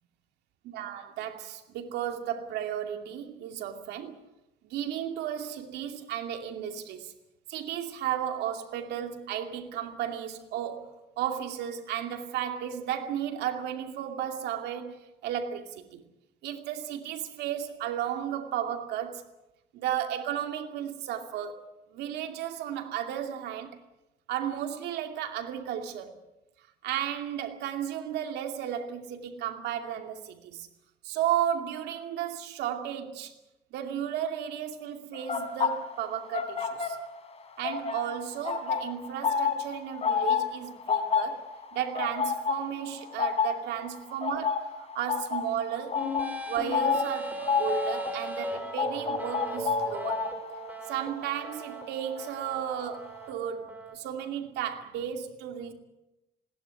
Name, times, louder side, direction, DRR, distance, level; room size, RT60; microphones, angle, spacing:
voice 1, 0.7-4.2 4.6-7.1 7.5-15.0 15.2-16.1 16.4-19.2 19.7-23.8 24.3-26.2 26.8-30.7 31.0-33.3 33.7-37.0 37.6-41.5 41.7-46.0 46.5-50.2 50.9-55.7, right 10 dB, 80° right, 2.5 m, -34 dB
sound 1, 35.1-37.3 37.6-52.5 52.8-53.1, left 6 dB, 40° left, 3.4 m, -30 dB
sound 2, 45.9-53.9, right 1 dB, 10° right, 3.9 m, -38 dB
20.5 x 17.0 x 9.7 m
cardioid pair, 110°, 17 cm